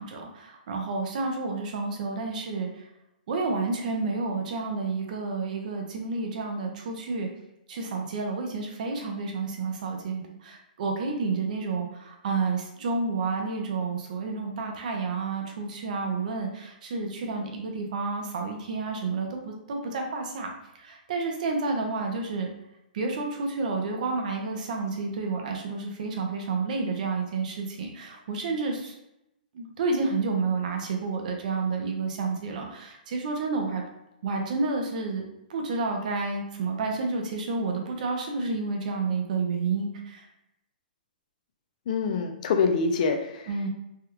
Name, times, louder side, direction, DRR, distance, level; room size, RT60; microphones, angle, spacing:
voice 1, 0.0-2.9 3.3-7.3 7.7-20.5 20.7-22.5 22.9-29.0 29.5-33.8 34.2-40.3 43.5-43.7, right 4 dB, 55° right, 2 dB, 0.7 m, -30 dB
voice 2, 41.9-43.5, left 5 dB, 50° left, 5 dB, 0.4 m, -25 dB
3.4 x 2.3 x 2.9 m, 0.86 s
hypercardioid pair, 155°, 5 cm